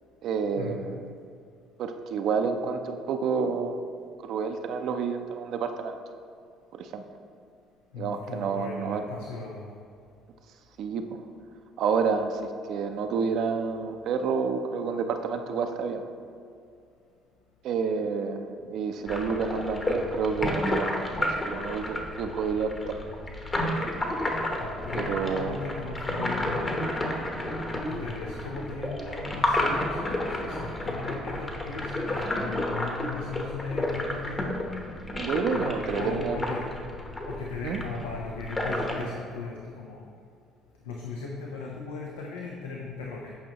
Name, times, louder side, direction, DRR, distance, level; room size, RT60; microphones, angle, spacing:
voice 1, 0.2-1.0 1.8-3.8 4.2-6.0 6.7-7.0 8.0-9.0 10.8-11.3 11.8-16.0 17.6-23.0 24.9-25.6 35.1-36.4 37.6-37.8, right 5 dB, 65° right, 6 dB, 0.5 m, -29 dB
voice 2, 7.9-9.8 24.6-26.8 27.9-34.6 35.5-36.6 37.3-40.0 40.8-43.3, left 4 dB, 90° left, -1 dB, 0.6 m, -37 dB
sound 1, 19.1-39.0, left 1 dB, 30° left, 1.0 m, -31 dB
8.6 x 5.3 x 2.9 m, 2.4 s
hypercardioid pair, 65°, 0 cm